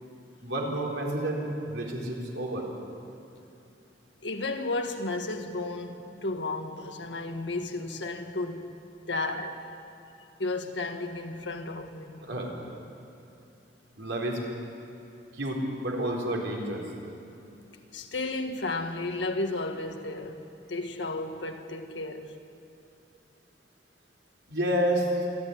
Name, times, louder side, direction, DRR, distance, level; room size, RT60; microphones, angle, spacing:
voice 1, 0.4-2.7 12.3-12.5 14.0-14.4 15.3-16.8 24.5-25.1, right 1 dB, 85° right, 4.1 m, -30 dB
voice 2, 4.2-8.7 9.1-9.7 10.4-12.3 17.9-20.4 20.7-22.3, left 2 dB, 85° left, 1.6 m, -33 dB
27.0 x 11.5 x 9.6 m
head